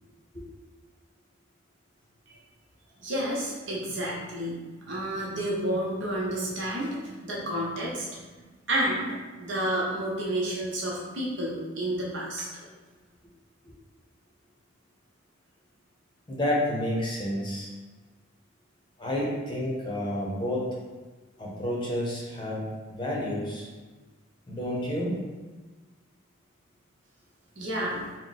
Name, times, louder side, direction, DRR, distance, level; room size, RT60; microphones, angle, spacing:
voice 1, 3.0-4.6 4.9-8.3 8.7-12.5 27.6-28.0, right 1 dB, 65° right, -5 dB, 1.0 m, -30 dB
voice 2, 16.3-17.7 19.0-20.7 21.4-23.7 24.5-25.2, left 1 dB, 25° left, -4 dB, 0.7 m, -30 dB
3.7 x 2.2 x 4.0 m, 1.3 s
head